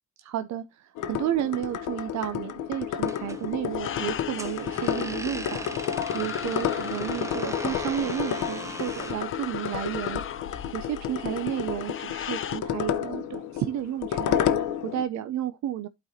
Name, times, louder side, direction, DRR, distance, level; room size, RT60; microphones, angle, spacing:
voice 1, 0.2-15.9, right 11 dB, 65° right, 0.6 m, -32 dB
sound 1, 1.0-15.0, left 9 dB, 80° left, 0.8 m, -31 dB
sound 2, 3.0-9.2, right 2 dB, 10° right, 0.7 m, -40 dB
sound 3, 3.7-12.6, left 10 dB, 45° left, 0.5 m, -39 dB
12.0 x 4.1 x 2.7 m
cardioid pair, 90°, 30 cm